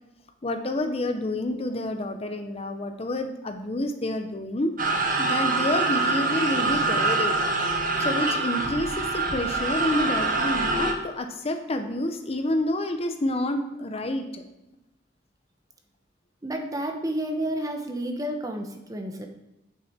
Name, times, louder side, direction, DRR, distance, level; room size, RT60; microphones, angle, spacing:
voice 1, 0.4-4.7 5.2-7.5 8.0-14.5, left 1 dB, 35° left, 7 dB, 0.7 m, -28 dB
sound 1, 4.8-10.9, right 3 dB, 45° right, 1.0 m, -25 dB
voice 2, 16.4-19.3, right 1 dB, 20° right, 4 dB, 0.9 m, -30 dB
8.7 x 6.6 x 4.2 m, 0.96 s
head